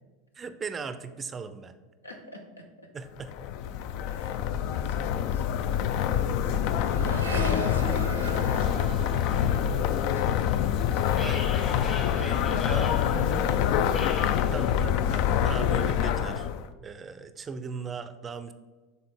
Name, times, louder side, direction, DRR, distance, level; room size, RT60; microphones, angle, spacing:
voice 1, 0.3-1.7 2.9-3.3 6.8-6.9 11.2-11.6 12.1-12.8 14.5-16.5 16.8-18.5, right 5 dB, 25° right, 11 dB, 0.4 m, -38 dB
voice 2, 2.0-2.9 4.0-6.6 7.0-11.3 12.0-14.5, equal, 90° left, 3 dB, 0.8 m, -41 dB
sound 1, 3.2-16.7, left 9 dB, 55° left, 0.3 m, -26 dB
Accelerating revving vroom, 4.3-4.4 4.7-12.2 12.5-13.1, right 2 dB, 85° right, 0.6 m, -40 dB
sound 2, 8.6-14.8, left 3 dB, 30° left, 1.2 m, -42 dB
6.7 x 3.8 x 3.8 m, 1.3 s
figure-of-eight pair, 80°, 0 cm